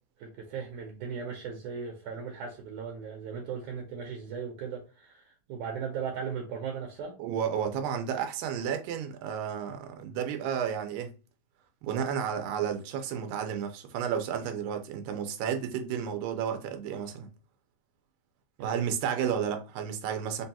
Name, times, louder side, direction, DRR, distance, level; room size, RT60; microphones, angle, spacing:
voice 1, 0.2-7.1 18.6-18.8, right 6 dB, 75° right, 1.9 m, -37 dB
voice 2, 7.2-11.1 11.8-17.3 18.6-20.5, right 8 dB, 90° right, 2.3 m, -32 dB
5.3 x 2.3 x 2.7 m
omnidirectional pair, 3.8 m